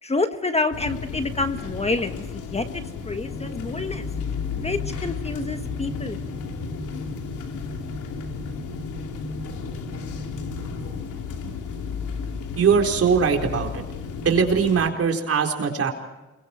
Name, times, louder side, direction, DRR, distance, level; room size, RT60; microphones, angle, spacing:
voice 1, 0.0-4.1 4.5-6.2, left 3 dB, 20° left, 8 dB, 1.4 m, -28 dB
sound 1, 0.7-14.9, left 6 dB, 80° left, 3.2 m, -33 dB
sound 2, 3.2-11.0, left 1 dB, 65° left, 5.5 m, -37 dB
voice 2, 12.6-13.8 14.2-15.9, right 6 dB, 50° right, 2 dB, 4.0 m, -21 dB
28.5 x 22.5 x 4.4 m, 1.1 s
cardioid pair, 90°, 30 cm